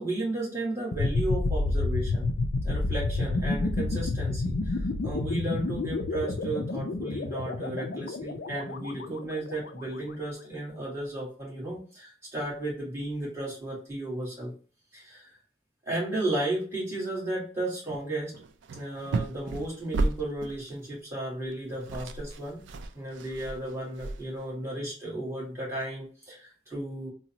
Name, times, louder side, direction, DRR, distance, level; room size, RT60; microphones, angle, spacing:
voice 1, 0.0-2.3 2.6-14.5 14.9-15.4 15.8-18.3 18.7-22.6 22.9-27.1, right 1 dB, 15° right, -6 dB, 1.4 m, -34 dB
sound 1, 0.9-9.8, left 2 dB, 60° left, 0.4 m, -30 dB
sound 2, 17.9-18.1 18.3-20.7 21.5-21.6 21.7-24.5, right 3 dB, 85° right, 0.3 m, -33 dB
3.8 x 2.0 x 2.8 m, 0.40 s
head